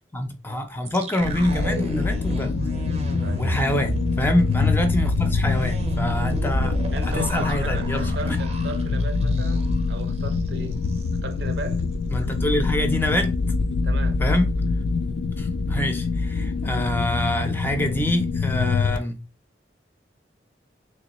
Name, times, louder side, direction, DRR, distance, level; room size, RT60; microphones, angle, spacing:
voice 1, 0.0-2.6 3.3-6.8 7.0-8.4 12.1-13.3 14.2-14.5 15.3-19.2, left 1 dB, 10° left, 0.5 m, -26 dB
sound 1, 0.8-9.9 10.2-10.3 10.7-11.1, equal, 35° right, 0.6 m, -31 dB
sound 2, 1.2-19.0, left 4 dB, 75° left, 0.3 m, -25 dB
voice 2, 3.2-3.6 6.9-10.8 11.2-11.8 13.8-14.2, right 2 dB, 75° right, 0.7 m, -36 dB
3.3 x 3.0 x 3.0 m
head